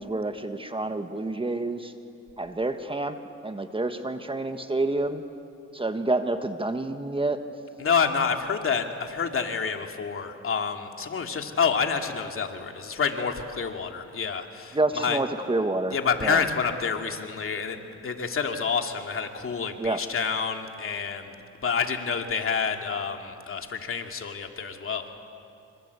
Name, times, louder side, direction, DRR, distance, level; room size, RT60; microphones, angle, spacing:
voice 1, 0.0-1.9 2.4-3.2 3.4-5.2 5.7-7.4 14.7-16.4 19.8-20.0, right 2 dB, 15° right, 8 dB, 1.5 m, -28 dB
voice 2, 7.8-15.2 15.9-21.3 21.6-25.1, left 6 dB, 45° left, 4 dB, 2.5 m, -28 dB
27.0 x 26.0 x 8.3 m, 2.6 s
cardioid pair, 90°, 30 cm